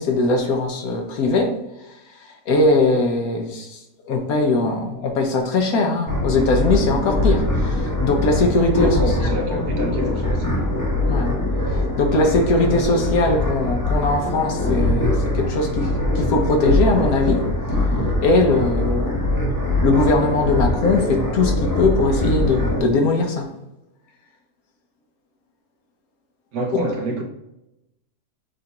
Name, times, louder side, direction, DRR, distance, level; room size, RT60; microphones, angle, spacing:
voice 1, 0.0-1.6 2.5-3.8 4.1-9.0 11.1-11.4 11.7-17.4 18.2-19.3 19.8-23.5, left 2 dB, 70° left, 1.2 m, -20 dB
sound 1, 6.1-22.8, left 1 dB, 15° left, 0.8 m, -22 dB
voice 2, 8.8-10.8 26.5-27.2, right 1 dB, 70° right, 1.2 m, -27 dB
6.6 x 2.6 x 2.9 m
omnidirectional pair, 1.7 m